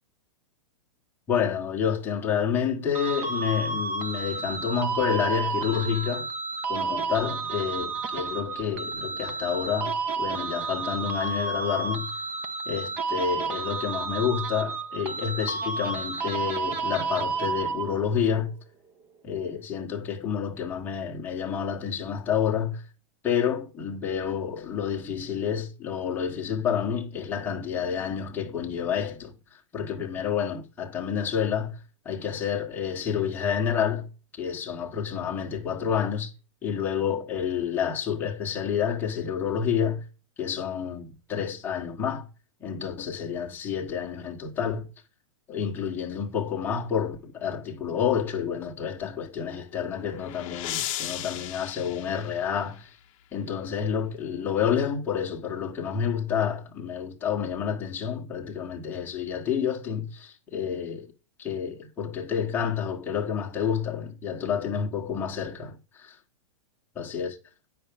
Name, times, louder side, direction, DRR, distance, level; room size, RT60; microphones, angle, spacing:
voice 1, 1.3-6.3 6.7-12.1 12.7-18.5 19.2-22.8 23.2-34.1 34.4-36.3 36.6-40.0 40.4-42.3 42.6-44.9 45.5-53.0 53.3-61.1 61.4-66.2 67.0-67.3, left 7 dB, 10° left, 1.2 m, -29 dB
sound 1, 2.9-18.2, right 4 dB, 10° right, 0.4 m, -31 dB
sound 2, 49.6-53.0, left 13 dB, 30° left, 0.9 m, -36 dB
9.8 x 5.8 x 5.2 m
supercardioid pair, 175°, 17 cm